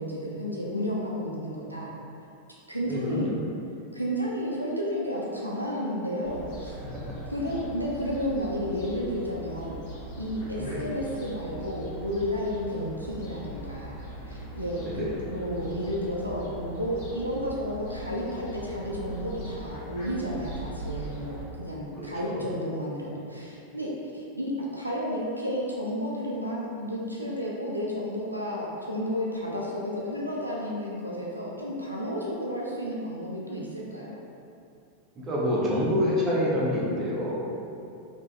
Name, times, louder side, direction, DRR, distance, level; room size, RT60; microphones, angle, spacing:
voice 1, 0.0-1.9 2.7-3.3 3.9-6.8 7.3-9.8 10.2-14.0 14.3-23.9 24.1-34.1, equal, 90° right, -5 dB, 0.3 m, -32 dB
voice 2, 2.8-3.4 6.8-7.2 10.6-10.9 14.8-15.2 22.0-22.4 35.1-37.5, left 1 dB, 25° right, -6 dB, 0.6 m, -28 dB
Fowl, 6.2-21.4, right 1 dB, 50° left, 0.6 m, -40 dB
3.4 x 2.1 x 2.2 m, 2.6 s
figure-of-eight pair, 90°, 0 cm